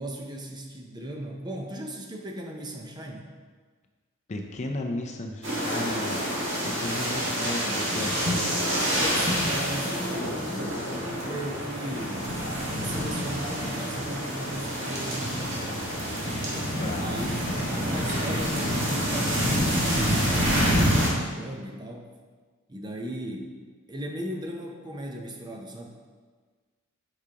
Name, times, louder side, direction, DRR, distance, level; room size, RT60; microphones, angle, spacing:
voice 1, 0.0-3.3 8.8-12.3 12.8-15.9 17.0-17.3 17.7-22.1 22.7-23.5 23.9-25.9, right 1 dB, 20° right, 2 dB, 0.6 m, -37 dB
voice 2, 4.3-6.2 6.6-8.1 16.8-17.0, left 2 dB, 30° left, 3 dB, 0.5 m, -34 dB
sound 1, 5.4-21.1, equal, 60° right, 1.7 m, -27 dB
8.6 x 4.8 x 2.8 m, 1.5 s
head